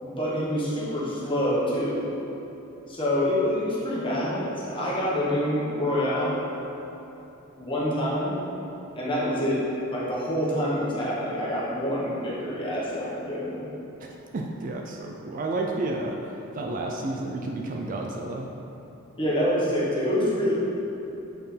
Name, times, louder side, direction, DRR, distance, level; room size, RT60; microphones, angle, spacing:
voice 1, 0.0-2.1 2.9-6.4 7.6-8.4 8.9-9.6 9.9-13.6 19.2-20.5, equal, 25° left, -7 dB, 1.3 m, -26 dB
voice 2, 14.0-16.2 16.5-18.5, right 2 dB, 40° right, 1 dB, 0.4 m, -31 dB
7.8 x 4.4 x 3.4 m, 2.9 s
head